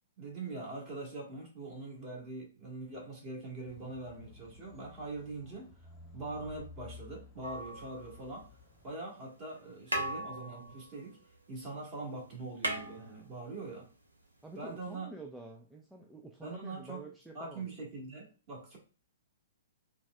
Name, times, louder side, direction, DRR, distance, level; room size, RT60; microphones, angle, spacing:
voice 1, 0.2-5.7 6.1-8.6 8.8-11.2 11.5-13.9 14.5-15.1 16.4-17.1 17.3-18.8, right 3 dB, 30° right, -3 dB, 1.6 m, -43 dB
sound 1, 3.7-8.9, left 2 dB, 15° left, 0.7 m, -54 dB
sound 2, 7.4-8.6 9.5-9.6 9.9-11.8 12.0-12.1 12.3-13.7 14.9-15.0, right 1 dB, 80° right, 0.6 m, -38 dB
voice 2, 14.4-17.7, right 2 dB, 5° right, 0 dB, 0.3 m, -48 dB
3.9 x 2.3 x 2.2 m, 0.35 s
figure-of-eight pair, 115°, 0 cm